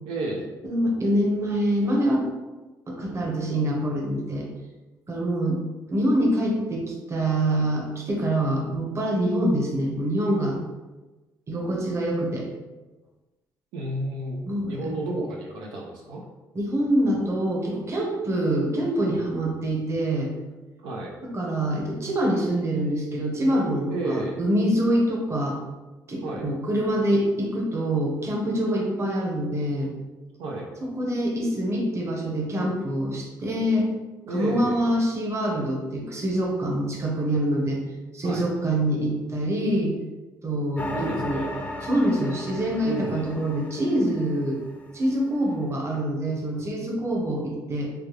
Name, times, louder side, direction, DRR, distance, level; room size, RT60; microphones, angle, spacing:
voice 1, 0.0-0.5 13.7-16.3 20.8-21.1 23.9-24.4 26.2-26.5 30.4-30.7 34.3-34.8 38.2-38.5 40.9-41.5 42.8-43.3, right 1 dB, 90° right, -1 dB, 0.5 m, -31 dB
voice 2, 0.6-2.2 2.9-4.5 5.1-5.6 5.9-10.6 11.5-12.5 14.5-14.9 16.5-20.3 21.2-25.6 26.1-29.9 30.9-33.9 34.3-37.8 38.1-39.9 40.4-41.4 41.8-44.6 44.9-47.9, right 1 dB, 40° right, -1 dB, 0.9 m, -25 dB
sound 1, 40.8-45.2, left 1 dB, 20° left, 0.5 m, -36 dB
3.2 x 2.3 x 3.1 m, 1.2 s
supercardioid pair, 70°, 8 cm